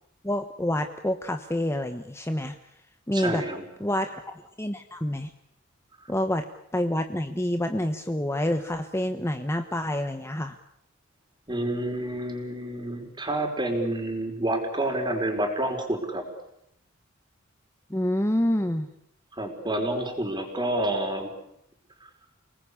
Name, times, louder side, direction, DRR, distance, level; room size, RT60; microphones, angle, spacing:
voice 1, 0.2-2.6 3.1-3.4 3.8-5.3 6.1-6.4 6.7-10.6 17.9-18.9, left 1 dB, 15° left, 7 dB, 1.1 m, -27 dB
voice 2, 3.1-3.6 11.5-16.2 19.3-21.3 22.0-22.1, right 1 dB, 20° right, 4 dB, 4.9 m, -28 dB
29.0 x 19.5 x 8.6 m, 0.78 s
head